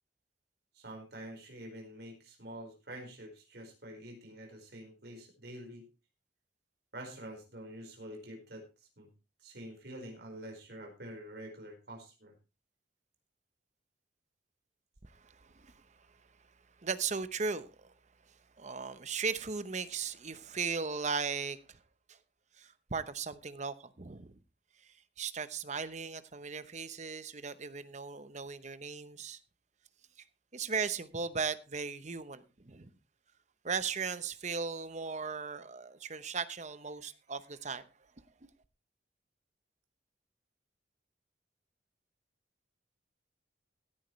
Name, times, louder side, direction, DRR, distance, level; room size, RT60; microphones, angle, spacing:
voice 1, 0.7-5.9 6.9-9.1 9.4-12.3, right 1 dB, 60° right, 4.5 m, -47 dB
voice 2, 15.0-15.8 16.8-17.9 18.6-21.8 22.1-22.2 22.6-24.3 25.2-29.4 30.5-32.9 33.6-37.9, right 5 dB, 40° right, 0.9 m, -37 dB
16.5 x 10.0 x 3.2 m
head